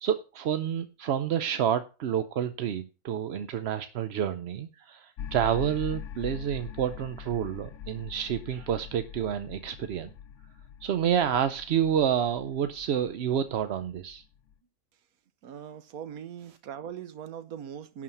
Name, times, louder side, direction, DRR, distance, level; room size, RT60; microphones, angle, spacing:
voice 1, 0.0-10.1 10.8-14.2, right 9 dB, 60° right, 0.7 m, -29 dB
sound 1, 5.2-14.5, left 8 dB, 65° left, 0.9 m, -43 dB
voice 2, 15.4-18.0, right 9 dB, 85° right, 1.3 m, -40 dB
11.0 x 4.8 x 7.0 m
omnidirectional pair, 1.5 m